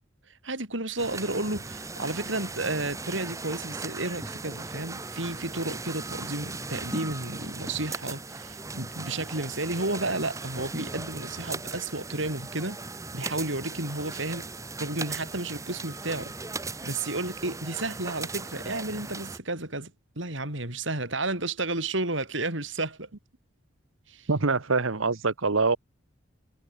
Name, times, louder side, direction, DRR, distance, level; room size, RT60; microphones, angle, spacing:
voice 1, 0.4-12.8 13.1-14.5 14.8-16.3 16.8-23.1 24.1-24.3, right 2 dB, 75° right, 6.5 m, -32 dB
sound 1, 1.0-19.4, right 3 dB, 15° right, 1.2 m, -38 dB
voice 2, 24.3-25.8, right 3 dB, 90° right, 1.3 m, -24 dB
head